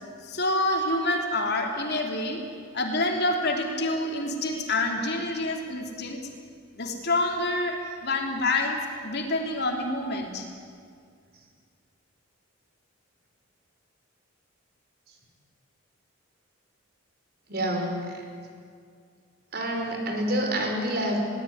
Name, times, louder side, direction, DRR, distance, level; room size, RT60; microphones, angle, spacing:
voice 1, 0.2-2.4 2.7-6.2 6.7-10.5, left 2 dB, 55° left, 2 dB, 3.2 m, -27 dB
voice 2, 17.5-18.0 19.5-21.2, right 1 dB, 50° right, 2 dB, 4.8 m, -27 dB
22.0 x 18.5 x 9.5 m, 2.2 s
head